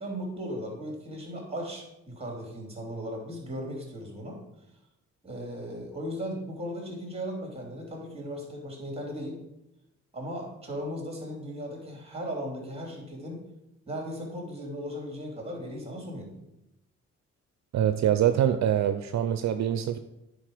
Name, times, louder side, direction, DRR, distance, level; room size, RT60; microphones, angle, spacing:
voice 1, 0.0-4.4 5.2-9.4 10.1-13.4 13.9-16.3, equal, 20° right, 0 dB, 3.1 m, -37 dB
voice 2, 17.7-20.0, right 10 dB, 65° right, 9 dB, 0.5 m, -24 dB
9.5 x 5.1 x 5.0 m, 0.90 s
cardioid pair, 90°, 30 cm